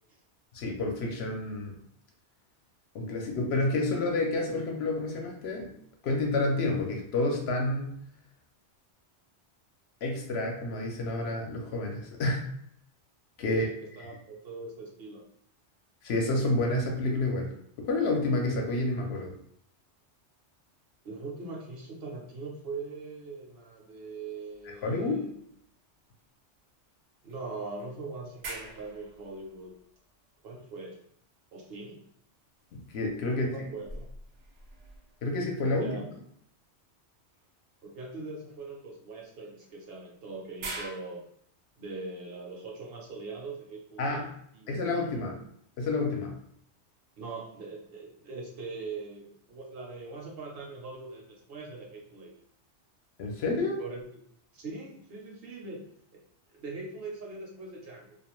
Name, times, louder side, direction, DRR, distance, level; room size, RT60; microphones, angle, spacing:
voice 1, 0.5-1.7 2.9-5.7 6.0-7.9 10.0-12.5 13.4-13.7 16.0-17.5 17.8-19.3 24.8-25.3 32.7-33.5 35.2-36.0 44.0-44.3 44.7-45.3 45.8-46.3 53.2-53.8, left 2 dB, 70° left, 1 dB, 0.8 m, -29 dB
voice 2, 13.5-15.3 21.0-25.3 27.2-29.8 30.4-31.0 31.5-32.0 33.3-34.1 35.8-36.0 37.8-41.3 41.8-45.3 47.2-52.3 53.8-54.0 54.5-55.9 56.1-56.2 56.5-58.2, right 3 dB, 60° right, -1 dB, 0.8 m, -41 dB
sound 1, 24.5-25.8 26.2-26.3 27.3-30.8 32.5-35.6 37.3-37.5 39.6-40.9, right 2 dB, 90° right, 0.9 m, -46 dB
2.4 x 2.2 x 3.0 m, 0.69 s
omnidirectional pair, 1.2 m